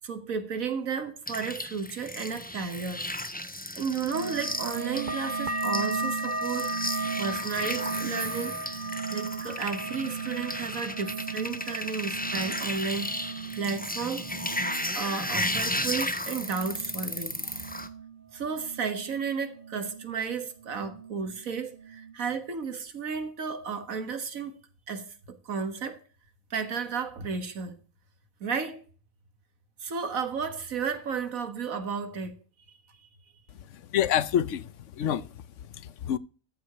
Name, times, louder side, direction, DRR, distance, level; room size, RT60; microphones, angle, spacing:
voice 1, 0.0-3.1 3.7-6.7 7.2-13.2 13.5-14.3 14.9-17.7 18.3-24.6 24.9-26.0 26.5-27.8 28.4-28.8 29.8-32.4 32.7-33.1, right 5 dB, 75° right, 2.0 m, -33 dB
sound 1, 1.3-17.9, left 1 dB, 5° left, 0.9 m, -34 dB
sound 2, 4.1-19.3 19.5-20.3 20.6-21.4 21.7-22.1, right 3 dB, 35° right, 1.2 m, -36 dB
voice 2, 33.7-35.3 35.7-36.2, left 10 dB, 65° left, 1.0 m, -28 dB
14.0 x 4.8 x 6.7 m
omnidirectional pair, 1.4 m